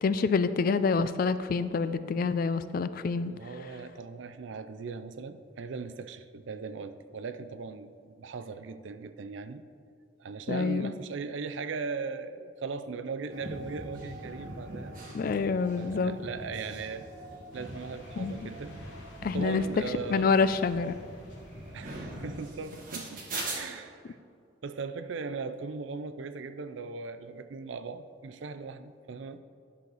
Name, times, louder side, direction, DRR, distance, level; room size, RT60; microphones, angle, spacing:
voice 1, 0.0-3.3 10.5-10.9 15.1-16.2 18.2-18.3 19.2-19.6 20.1-21.0, left 4 dB, 45° left, 13 dB, 0.3 m, -27 dB
voice 2, 3.3-9.6 10.2-14.9 15.8-17.1 17.5-18.8 19.3-20.4 21.7-23.3 23.5-24.2 24.6-29.4, right 4 dB, 75° right, 11 dB, 0.4 m, -38 dB
sound 1, 13.3-23.6, right 2 dB, 45° right, 1.7 m, -42 dB
sound 2, 17.5-22.5, left 1 dB, 75° left, 1.7 m, -51 dB
10.5 x 6.3 x 4.0 m, 2.4 s
head